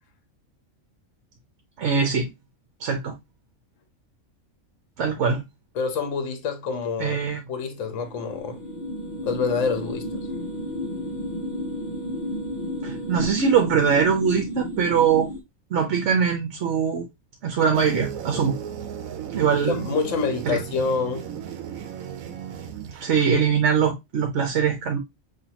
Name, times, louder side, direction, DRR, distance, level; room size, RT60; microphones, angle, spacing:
voice 1, 1.8-2.3 2.8-3.2 5.0-5.4 7.0-7.5 12.8-15.3 15.7-17.1 17.4-18.6 19.3-19.9 20.5-20.6 23.0-25.0, right 6 dB, 65° right, 1.1 m, -22 dB
voice 2, 5.7-7.2 7.5-8.6 9.2-10.3 19.7-21.3, left 5 dB, 65° left, 1.3 m, -27 dB
sound 1, 7.9-15.4, equal, 35° left, 1.2 m, -32 dB
sound 2, 17.7-23.3, right 9 dB, 90° right, 1.1 m, -35 dB
5.9 x 3.0 x 2.9 m
omnidirectional pair, 1.4 m